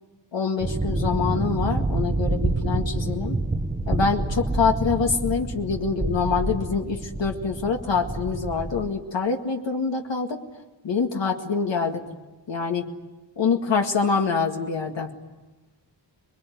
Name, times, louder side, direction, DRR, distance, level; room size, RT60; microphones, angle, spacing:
voice 1, 0.3-3.4 3.9-10.4 10.8-12.1 12.5-12.9 13.4-15.1, left 5 dB, 75° left, 2 dB, 2.1 m, -25 dB
sound 1, 0.6-8.9, right 2 dB, 15° right, 1.0 m, -28 dB
28.0 x 22.0 x 9.4 m, 1.2 s
wide cardioid pair, 135°, 44 cm